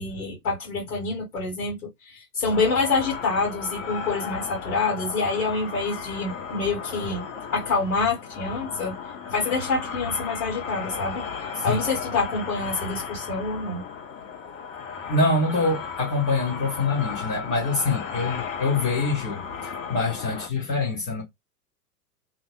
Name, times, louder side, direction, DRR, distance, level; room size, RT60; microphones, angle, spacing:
voice 1, 0.0-1.8 2.0-7.2 7.5-8.9 9.3-11.2 11.6-13.8, left 4 dB, 70° left, 1.4 m, -26 dB
sound 1, 2.5-20.5, left 6 dB, 55° left, 0.9 m, -35 dB
voice 2, 15.1-21.2, left 3 dB, 10° left, 0.3 m, -25 dB
2.5 x 2.1 x 2.4 m
figure-of-eight pair, 95°, 47 cm